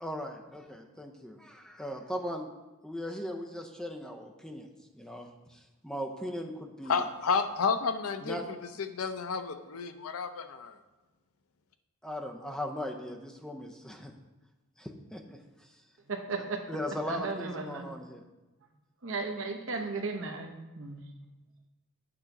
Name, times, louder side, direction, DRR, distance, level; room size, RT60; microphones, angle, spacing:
voice 1, 0.0-2.5 2.8-4.7 4.9-7.0 8.2-8.5 12.0-14.1 14.8-15.7 16.7-18.2, equal, 5° left, 2 dB, 0.6 m, -39 dB
voice 2, 6.9-10.8, left 5 dB, 75° left, 9 dB, 0.6 m, -31 dB
voice 3, 16.1-16.6 17.1-17.8 19.0-20.5 20.8-21.0, right 3 dB, 60° right, 4 dB, 0.9 m, -35 dB
8.7 x 3.9 x 5.9 m, 1.1 s
head